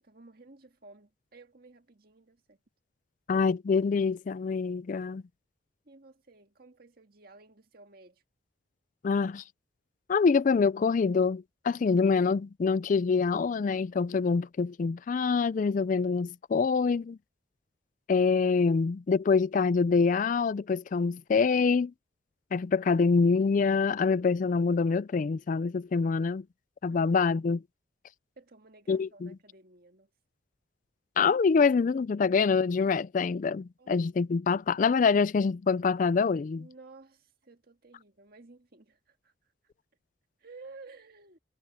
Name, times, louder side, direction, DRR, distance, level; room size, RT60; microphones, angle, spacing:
voice 1, 0.0-2.6 5.9-8.2 26.9-27.2 28.4-30.1 33.8-33.9 36.5-39.3 40.4-41.4, right 3 dB, 50° right, 1.9 m, -54 dB
voice 2, 3.3-5.2 9.0-9.4 10.1-17.2 18.1-21.9 22.5-26.4 26.8-27.6 28.9-29.4 31.2-36.7, left 5 dB, 40° left, 0.3 m, -25 dB
head